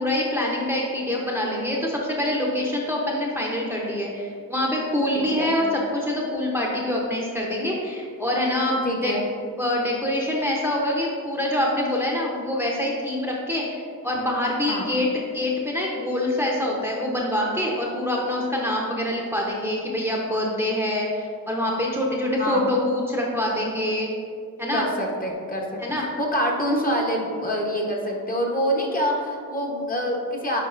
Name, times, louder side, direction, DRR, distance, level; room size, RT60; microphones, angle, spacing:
voice 1, 0.0-9.1 9.6-24.1 24.6-24.9 25.8-26.1, left 1 dB, 5° right, -3 dB, 0.8 m, -25 dB
voice 2, 5.1-5.6 8.8-9.3 14.7-14.9 22.4-22.7 24.7-25.8 26.2-30.6, equal, 25° left, -1 dB, 1.0 m, -26 dB
9.1 x 4.0 x 2.6 m, 2.3 s
cardioid pair, 80°, 36 cm